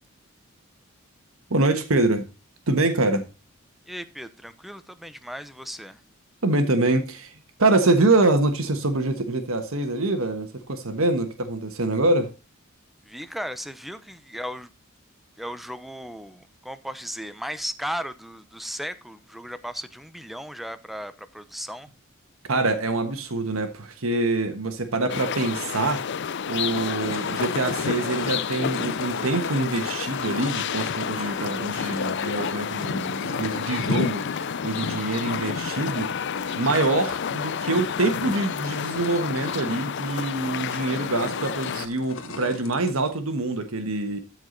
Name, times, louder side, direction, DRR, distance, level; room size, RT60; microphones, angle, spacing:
voice 1, 1.5-2.3 2.7-3.2 6.4-12.3 22.5-26.0 26.5-36.1 36.6-44.2, right 2 dB, 85° right, 1.3 m, -25 dB
voice 2, 3.9-6.0 13.0-14.7 15.4-21.9, equal, ahead, 0.7 m, -36 dB
sound 1, 25.1-41.9, left 7 dB, 55° left, 0.5 m, -30 dB
sound 2, 26.4-43.2, left 3 dB, 80° left, 1.5 m, -40 dB
13.0 x 4.8 x 4.0 m
head